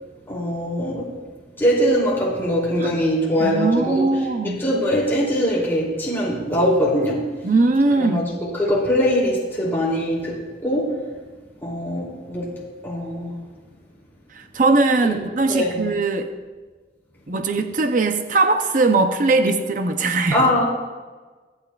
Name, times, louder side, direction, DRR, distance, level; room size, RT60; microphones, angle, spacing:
voice 1, 0.3-1.1 1.6-4.1 4.4-7.3 8.0-11.0 11.6-13.5 15.0-15.2 15.5-15.9 20.3-20.6, equal, 15° left, -6 dB, 3.0 m, -22 dB
voice 2, 3.4-4.6 7.4-8.3 14.3-16.3 17.3-20.5, right 3 dB, 50° right, 7 dB, 0.7 m, -20 dB
25.5 x 8.9 x 2.4 m, 1.4 s
head